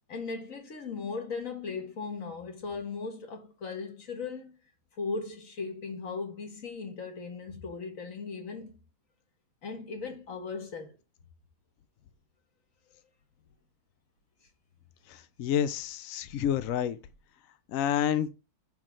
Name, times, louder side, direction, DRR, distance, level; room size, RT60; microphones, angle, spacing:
voice 1, 0.1-4.6 5.0-8.8 9.6-11.0, left 4 dB, 45° left, 1.8 m, -37 dB
voice 2, 15.1-17.0 17.7-18.3, left 9 dB, 75° left, 0.7 m, -29 dB
5.6 x 4.7 x 6.2 m
omnidirectional pair, 2.0 m